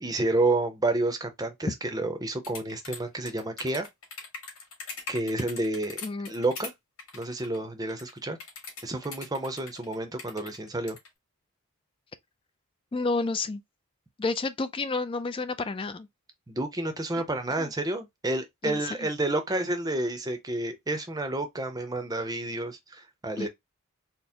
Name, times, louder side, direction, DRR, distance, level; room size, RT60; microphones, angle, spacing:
voice 1, 0.0-3.9 5.1-6.0 6.3-6.7 7.1-8.4 8.8-11.0 16.5-23.5, right 2 dB, 15° right, 0.6 m, -30 dB
sound 1, 2.4-6.7 7.0-7.6 7.9-11.1, left 4 dB, 80° left, 1.9 m, -41 dB
voice 2, 6.0-6.3 12.9-13.6 14.2-16.1 17.6-17.7 18.6-19.1 23.4-23.5, left 3 dB, 25° left, 0.3 m, -30 dB
4.3 x 2.0 x 3.5 m
head